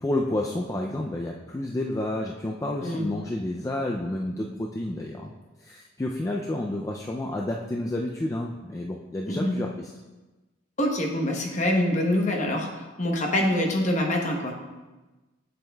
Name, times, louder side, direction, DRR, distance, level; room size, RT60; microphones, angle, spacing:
voice 1, 0.0-5.3 5.6-9.9, left 1 dB, 15° left, 0 dB, 0.3 m, -30 dB
voice 2, 9.3-9.6 10.8-14.5, left 1 dB, 40° left, 1 dB, 0.9 m, -25 dB
7.6 x 7.2 x 2.3 m, 1.2 s
head